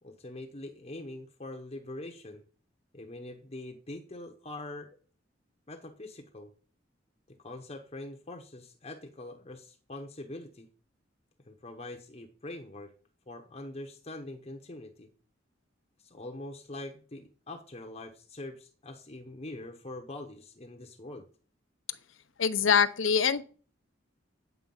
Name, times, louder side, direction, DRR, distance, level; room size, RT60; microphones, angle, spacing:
voice 1, 0.0-2.4 2.9-5.0 5.7-6.5 7.3-10.7 11.5-12.9 13.3-15.1 16.0-21.2, left 2 dB, 30° left, 0.9 m, -43 dB
voice 2, 22.4-23.4, left 6 dB, 90° left, 0.8 m, -24 dB
9.3 x 7.8 x 5.5 m
head